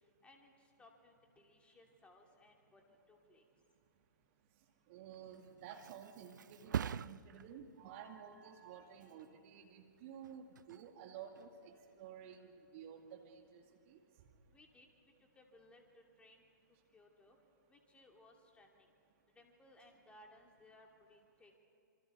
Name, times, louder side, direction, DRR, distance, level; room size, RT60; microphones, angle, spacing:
voice 1, 0.2-3.4 14.5-14.9 15.3-16.4 16.9-17.4 17.7-18.9 19.3-21.6, left 1 dB, 10° left, 1 dB, 3.0 m, -63 dB
voice 2, 4.9-13.6 13.9-14.0, right 8 dB, 40° right, 4 dB, 2.1 m, -53 dB
Thump thud, 5.1-12.6 13.0-13.4, right 8 dB, 65° right, 0.5 m, -47 dB
27.0 x 26.5 x 4.7 m, 2.7 s
figure-of-eight pair, 125°, 11 cm